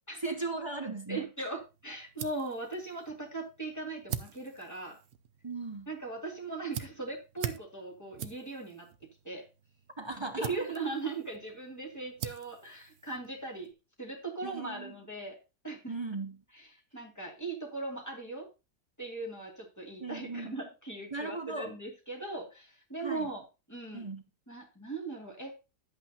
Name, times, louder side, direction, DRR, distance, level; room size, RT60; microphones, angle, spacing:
voice 1, 0.2-1.5 5.4-5.9 10.0-10.7 14.4-14.9 15.9-16.4 20.0-20.6 21.1-21.7 23.0-23.3 23.9-24.2, right 3 dB, 30° right, 6 dB, 0.5 m, -37 dB
voice 2, 1.1-5.0 5.9-8.9 9.2-9.5 10.4-13.7 14.0-15.4 15.6-15.9 16.5-16.7 16.9-18.5 19.0-23.4 23.7-24.1 24.5-25.5, right 3 dB, 10° left, -1 dB, 2.4 m, -39 dB
sound 1, 1.6-13.7, right 8 dB, 55° right, 0.8 m, -45 dB
11.0 x 8.3 x 2.8 m, 0.29 s
omnidirectional pair, 1.6 m